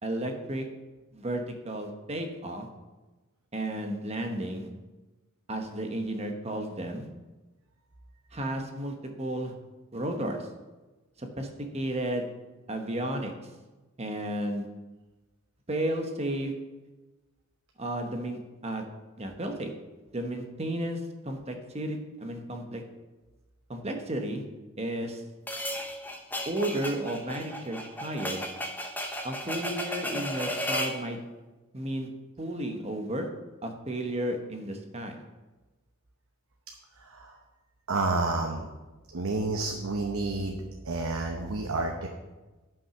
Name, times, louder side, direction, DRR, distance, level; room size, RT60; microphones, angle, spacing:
voice 1, 0.0-0.7 1.1-2.7 3.5-4.7 5.5-7.1 8.3-9.5 9.9-10.5 11.2-11.5 11.7-12.3 12.7-13.3 14.0-14.7 15.7-16.5 17.8-18.8 19.2-19.7 20.1-22.8 23.7-24.4 24.8-25.2 26.5-28.4 29.2-31.2 31.7-32.1 32.4-33.3 33.6-35.2, right 1 dB, 30° right, 4 dB, 1.0 m, -33 dB
sound 1, 25.5-31.0, left 1 dB, 10° left, 0.7 m, -34 dB
voice 2, 37.0-37.4 37.9-38.7 39.1-40.6 40.8-42.1, right 3 dB, 75° right, 2 dB, 0.9 m, -30 dB
11.0 x 5.7 x 5.9 m, 1.2 s
head